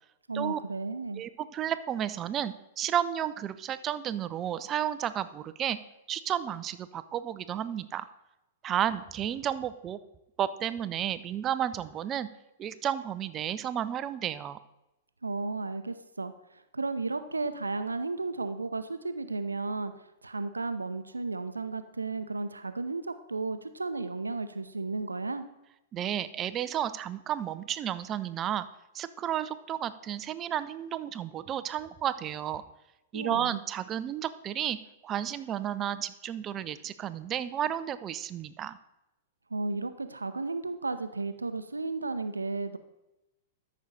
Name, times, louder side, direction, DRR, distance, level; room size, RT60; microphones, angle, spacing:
voice 1, 0.3-1.2 15.2-25.4 33.1-33.6 39.5-42.8, right 3 dB, 85° right, 11 dB, 0.7 m, -34 dB
voice 2, 1.2-5.8 6.1-8.1 8.6-10.0 10.4-12.3 12.6-14.6 25.9-28.6 28.9-32.6 33.1-34.8 35.0-38.8, right 10 dB, 30° right, 14 dB, 0.5 m, -32 dB
13.5 x 6.2 x 4.1 m, 0.93 s
figure-of-eight pair, 105°, 0 cm